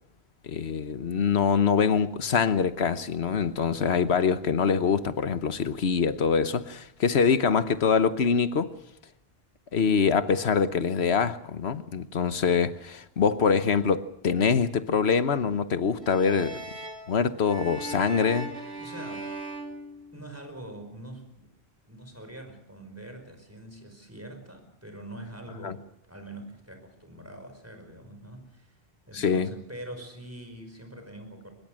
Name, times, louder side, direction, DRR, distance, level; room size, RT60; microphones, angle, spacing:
voice 1, 0.4-8.7 9.7-16.6 17.1-18.5 25.6-25.7 29.1-29.5, left 6 dB, 80° left, 1.4 m, -24 dB
sound 1, 16.0-20.6, right 2 dB, 85° right, 3.8 m, -39 dB
voice 2, 18.7-19.6 20.1-21.5 21.9-28.8 29.1-31.5, right 1 dB, 15° right, 5.1 m, -44 dB
23.5 x 21.5 x 6.4 m
omnidirectional pair, 1.1 m